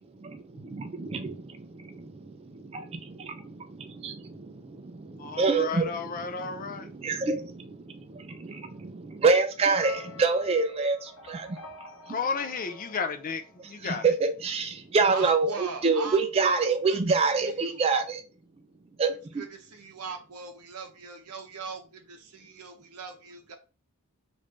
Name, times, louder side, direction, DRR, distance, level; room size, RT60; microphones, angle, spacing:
voice 1, 0.0-4.3 5.1-12.2 13.6-18.2 19.0-19.4, right 4 dB, 25° right, 0.3 m, -27 dB
voice 2, 5.2-6.9 12.1-14.0, left 5 dB, 40° left, 0.4 m, -33 dB
sound 1, 9.7-14.0, left 3 dB, 70° left, 0.9 m, -46 dB
voice 3, 15.1-17.0 17.3-17.8 19.4-23.5, right 4 dB, 85° right, 0.8 m, -40 dB
3.2 x 2.5 x 3.2 m
head